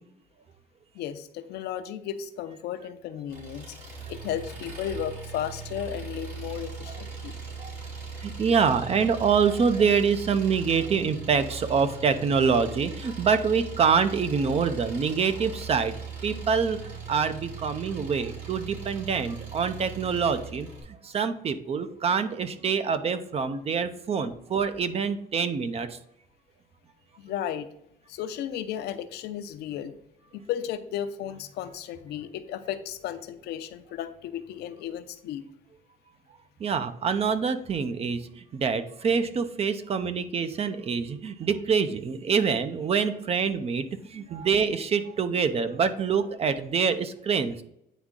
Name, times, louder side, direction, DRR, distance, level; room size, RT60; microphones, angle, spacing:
voice 1, 0.9-3.7 4.1-7.4 27.2-27.7 28.1-29.9 30.3-35.4, left 10 dB, 75° left, 9 dB, 0.7 m, -34 dB
Engine, 3.3-20.8, right 5 dB, 75° right, 2.7 m, -39 dB
voice 2, 8.2-16.0 16.2-16.8 17.1-20.7 21.0-26.0 36.6-43.8 44.1-47.6, right 6 dB, 35° right, 11 dB, 0.6 m, -25 dB
9.2 x 3.5 x 3.7 m, 0.78 s
cardioid pair, 110°, 17 cm